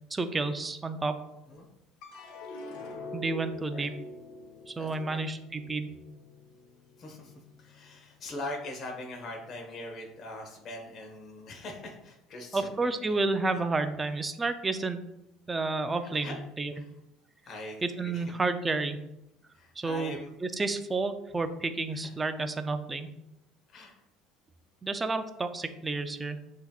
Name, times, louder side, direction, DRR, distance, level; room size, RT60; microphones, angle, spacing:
voice 1, 0.1-1.2 3.1-3.9 4.7-5.9 12.5-15.0 15.5-16.9 17.8-19.0 19.8-23.1 24.8-26.4, right 3 dB, 15° right, 9 dB, 0.4 m, -31 dB
sound 1, 2.0-8.4 8.9-9.6, left 3 dB, 80° left, 0.8 m, -45 dB
voice 2, 4.8-5.2 7.0-7.3 7.6-13.2 16.1-16.4 16.7-16.9 17.5-18.3 19.5-20.3 21.9-22.1 23.7-24.0, left 1 dB, 40° left, 1 dB, 1.1 m, -42 dB
7.7 x 2.9 x 2.4 m, 0.86 s
cardioid pair, 120°, 0 cm